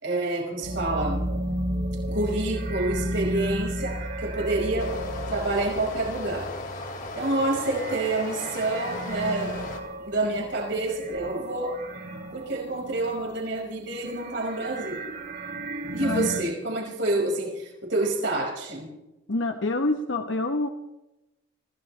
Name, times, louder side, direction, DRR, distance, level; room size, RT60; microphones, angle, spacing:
voice 1, 0.0-1.2 2.1-4.9 5.3-6.5 7.2-9.5 10.0-11.8 12.3-15.0 15.9-18.9, right 2 dB, 70° right, -1 dB, 5.4 m, -28 dB
sound 1, 0.6-13.5 13.7-16.4, right 1 dB, 55° right, 6.9 m, -33 dB
Stream, 4.8-9.8, left 3 dB, 50° left, 3.0 m, -37 dB
voice 2, 16.0-16.3 19.3-20.7, left 2 dB, 80° left, 5 dB, 1.1 m, -26 dB
26.0 x 16.5 x 3.3 m, 0.95 s
head